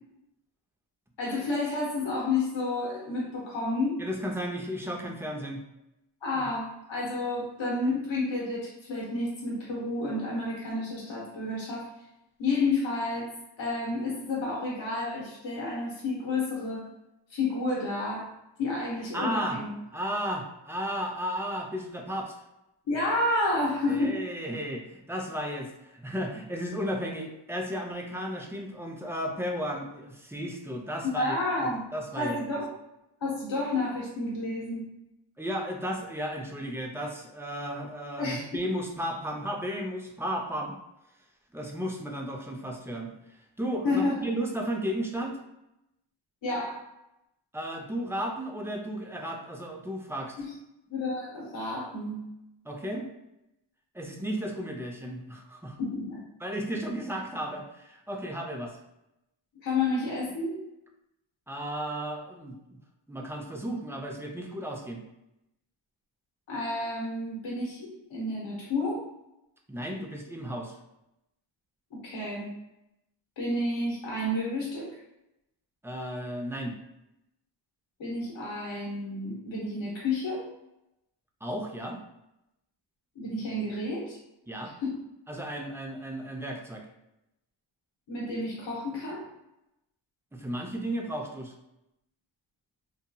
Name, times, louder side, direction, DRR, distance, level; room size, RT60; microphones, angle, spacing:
voice 1, 1.2-4.0 6.2-11.9 12.4-13.3 13.6-16.9 17.3-18.3 18.6-19.7 22.9-24.2 31.0-31.8 32.1-32.7 33.2-34.8 38.2-38.5 43.8-44.3 46.4-46.8 50.4-50.5 50.9-52.2 55.8-56.2 59.6-60.6 66.5-69.0 71.9-72.5 73.4-75.0 78.0-80.5 83.2-84.2 84.8-85.0 88.1-89.3, left 2 dB, 70° left, -4 dB, 0.9 m, -30 dB
voice 2, 4.0-5.6 6.3-6.5 19.1-19.6 19.9-22.3 23.9-32.4 35.4-40.8 41.5-43.1 43.6-45.4 47.5-50.3 52.6-53.1 53.9-55.8 56.4-58.8 61.5-62.8 63.1-65.0 69.7-70.8 75.8-76.8 81.4-82.0 84.5-84.7 85.3-86.8 90.3-91.5, equal, 5° right, 1 dB, 0.4 m, -34 dB
2.8 x 2.7 x 2.2 m, 0.88 s
wide cardioid pair, 75°, 48 cm